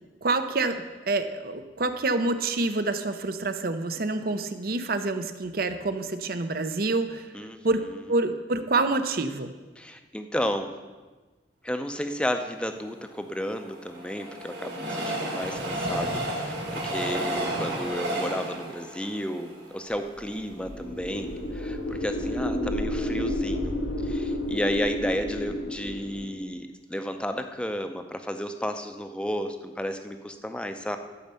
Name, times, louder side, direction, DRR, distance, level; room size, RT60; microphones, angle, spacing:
voice 1, 0.2-7.3 7.6-7.8 8.1-9.5, right 3 dB, 55° right, 9 dB, 0.7 m, -27 dB
voice 2, 9.8-10.7 11.6-23.8 24.0-31.0, equal, 5° left, 7 dB, 0.6 m, -32 dB
Train, 13.1-20.4 20.9-21.0 21.2-21.3, right 1 dB, 90° right, 3.0 m, -32 dB
sound 1, 20.2-26.3, left 1 dB, 80° left, 1.4 m, -31 dB
12.5 x 5.4 x 6.8 m, 1.3 s
head